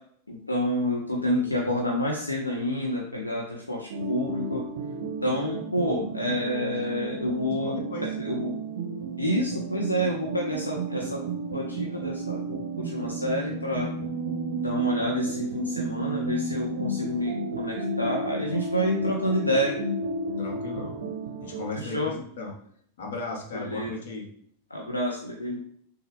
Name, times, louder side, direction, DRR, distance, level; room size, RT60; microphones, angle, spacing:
voice 1, 0.3-4.7 5.2-8.5 9.2-13.9 14.5-19.8 21.7-22.1 23.5-24.0 24.7-25.6, equal, 80° left, -1 dB, 0.6 m, -28 dB
voice 2, 1.1-1.6 7.6-8.1 20.4-21.0 21.4-22.6 23.0-24.3, left 3 dB, 60° left, 1 dB, 1.1 m, -36 dB
sound 1, 3.9-21.8, right 3 dB, 55° right, 0.5 m, -32 dB
6.4 x 2.3 x 3.3 m, 0.63 s
figure-of-eight pair, 90°, 0 cm